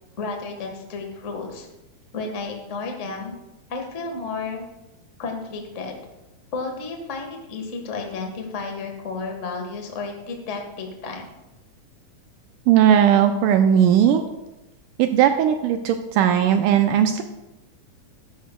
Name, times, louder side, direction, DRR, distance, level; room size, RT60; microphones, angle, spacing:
voice 1, 0.2-1.7 2.1-3.4 3.7-4.6 5.2-5.9 6.5-11.3, left 4 dB, 80° left, 2 dB, 0.6 m, -32 dB
voice 2, 12.7-14.2 15.0-17.2, right 9 dB, 80° right, 7 dB, 2.0 m, -17 dB
14.5 x 11.0 x 2.3 m, 0.99 s
omnidirectional pair, 4.0 m